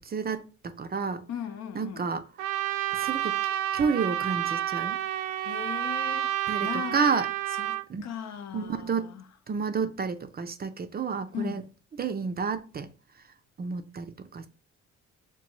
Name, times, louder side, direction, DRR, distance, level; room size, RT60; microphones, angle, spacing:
voice 1, 0.0-1.2 1.7-2.2 2.9-3.4 3.7-5.0 6.5-7.3 7.9-8.1 8.5-9.1 9.5-11.6 12.0-12.9 13.6-14.5, right 5 dB, 30° right, 0.5 m, -30 dB
voice 2, 1.3-2.1 5.3-7.0 7.6-9.2 11.3-11.7, left 8 dB, 60° left, 0.6 m, -38 dB
Trumpet, 2.4-7.8, right 12 dB, 90° right, 0.5 m, -30 dB
5.8 x 2.3 x 3.0 m
cardioid pair, 90°, 30 cm